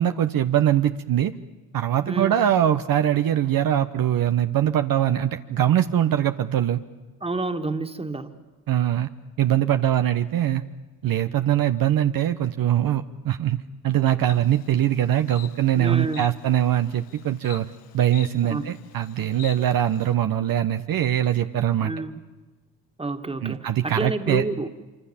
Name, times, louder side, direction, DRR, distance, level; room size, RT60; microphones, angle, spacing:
voice 1, 0.0-1.3 1.7-6.8 8.7-9.1 9.4-10.6 11.0-17.7 17.9-21.9 23.4-24.7, right 11 dB, 55° right, 8 dB, 1.1 m, -22 dB
voice 2, 2.1-2.4 7.2-8.3 15.8-16.2 18.5-18.7 21.8-22.1 23.0-24.7, right 2 dB, 15° right, 7 dB, 2.2 m, -29 dB
Insect, 14.3-20.1, left 12 dB, 90° left, 1.5 m, -47 dB
26.0 x 25.5 x 7.3 m, 1.2 s
supercardioid pair, 70°, 40 cm